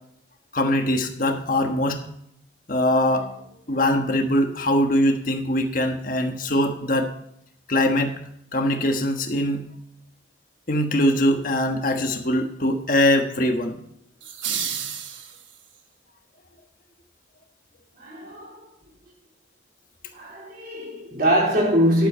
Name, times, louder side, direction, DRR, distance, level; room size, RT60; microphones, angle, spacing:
voice 1, 0.5-2.0 2.7-3.3 3.7-7.1 7.7-8.1 8.5-9.6 10.7-13.7, left 1 dB, 45° left, 1.3 m, -22 dB
sound 1, 14.2-15.8, right 8 dB, 90° right, 1.2 m, -31 dB
voice 2, 18.0-18.7 20.1-22.1, equal, 50° right, 4.0 m, -23 dB
11.5 x 7.5 x 4.3 m
head